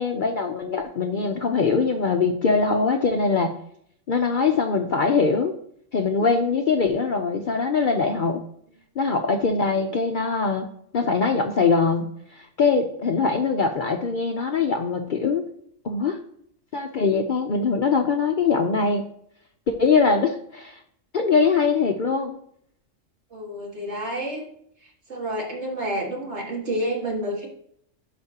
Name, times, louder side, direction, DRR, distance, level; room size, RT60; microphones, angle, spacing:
voice 1, 0.0-3.5 4.1-5.5 5.9-8.4 9.0-10.7 10.9-15.4 15.8-16.2 16.7-19.0 19.7-20.8 21.1-22.4, left 4 dB, 55° left, 4 dB, 0.6 m, -22 dB
voice 2, 23.3-24.5 24.8-27.5, right 1 dB, 60° right, -1 dB, 2.2 m, -29 dB
11.5 x 5.1 x 2.8 m, 0.67 s
omnidirectional pair, 1.3 m